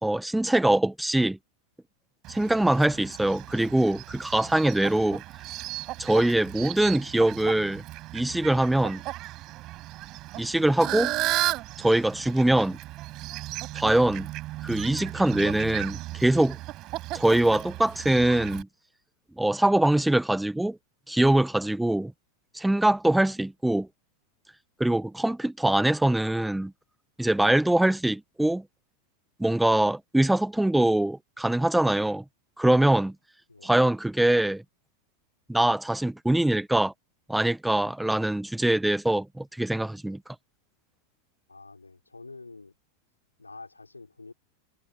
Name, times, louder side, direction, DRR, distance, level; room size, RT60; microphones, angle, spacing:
voice 1, 0.0-1.4 2.3-5.2 6.0-7.8 8.1-9.0 10.4-11.1 11.8-12.8 13.7-14.3 14.6-16.6 17.1-18.7 19.4-20.8 21.1-22.1 22.5-23.9 24.8-26.7 27.2-28.6 29.4-32.2 32.6-33.1 33.6-34.6 35.5-36.9 37.3-40.2, right 1 dB, 5° right, 1.6 m, -23 dB
Fowl, 2.2-18.6, right 17 dB, 35° right, 6.0 m, -35 dB
voice 2, 41.5-42.8 43.4-44.3, left 3 dB, 80° left, 5.2 m, -46 dB
figure-of-eight pair, 90°, 0 cm